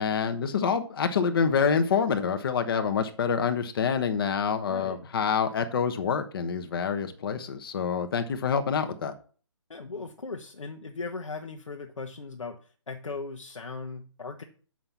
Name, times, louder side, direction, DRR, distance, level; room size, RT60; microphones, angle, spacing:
voice 1, 0.0-9.1, left 6 dB, 45° left, 7 dB, 1.2 m, -27 dB
voice 2, 4.7-5.1 9.7-12.6 12.9-14.4, left 4 dB, 85° left, 3 dB, 1.4 m, -38 dB
7.6 x 5.8 x 7.2 m, 0.40 s
hypercardioid pair, 155°, 16 cm